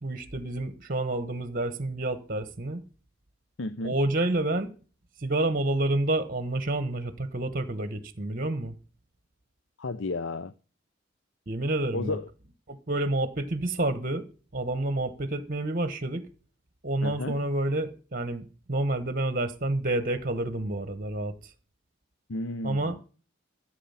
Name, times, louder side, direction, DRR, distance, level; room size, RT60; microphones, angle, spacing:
voice 1, 0.0-2.8 3.8-4.7 5.2-8.7 11.5-12.2 12.7-14.3 14.5-16.3 16.8-21.5 22.6-23.0, right 2 dB, 40° right, 1.1 m, -29 dB
voice 2, 3.6-3.9 9.8-10.5 11.9-12.3 17.0-17.4 22.3-23.0, left 2 dB, 65° left, 0.6 m, -33 dB
14.0 x 7.9 x 5.6 m
head